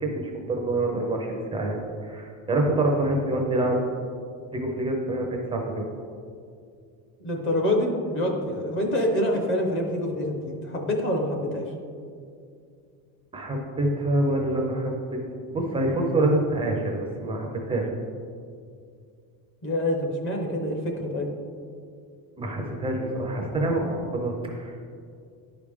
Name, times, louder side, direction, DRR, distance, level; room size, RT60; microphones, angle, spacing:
voice 1, 0.0-3.8 4.5-5.9 13.3-15.2 15.5-17.9 22.4-24.8, right 1 dB, 15° right, 0 dB, 0.5 m, -26 dB
voice 2, 7.2-11.7 19.6-21.3, left 1 dB, 30° left, 2 dB, 0.9 m, -26 dB
11.0 x 4.9 x 3.5 m, 2.3 s
cardioid pair, 175°, 41 cm